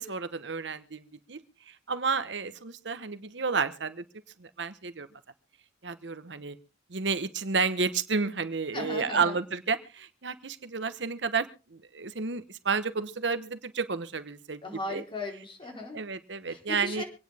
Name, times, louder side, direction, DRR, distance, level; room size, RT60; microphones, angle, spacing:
voice 1, 0.0-1.4 1.9-4.0 4.4-5.1 5.8-6.6 6.9-14.6 14.9-15.0 15.9-17.0, right 5 dB, 75° right, 12 dB, 1.0 m, -31 dB
voice 2, 8.7-9.4 14.6-16.0 16.5-17.0, left 2 dB, 30° left, 1 dB, 4.0 m, -37 dB
26.0 x 9.5 x 3.5 m, 0.33 s
head